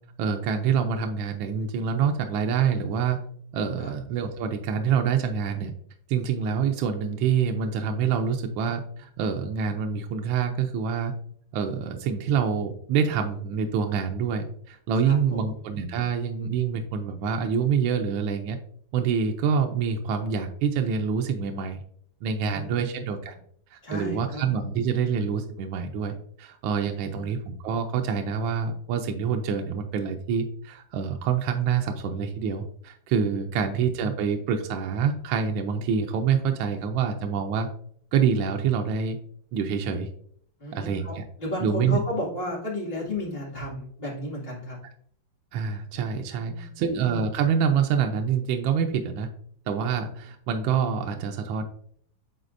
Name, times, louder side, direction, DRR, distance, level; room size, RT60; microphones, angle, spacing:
voice 1, 0.2-3.2 3.5-5.7 6.1-11.1 11.5-18.6 18.9-21.8 22.2-23.4 23.7-37.7 38.1-39.2 39.5-40.1 40.7-41.2 41.6-42.0 45.5-49.3 49.7-51.6, right 6 dB, 80° right, 4 dB, 1.4 m, -26 dB
voice 2, 15.0-15.4 22.5-22.9 23.8-24.4 27.0-27.4 40.6-44.8 46.3-46.9, left 1 dB, 30° left, -5 dB, 2.3 m, -33 dB
9.5 x 4.1 x 2.5 m, 0.62 s
omnidirectional pair, 2.1 m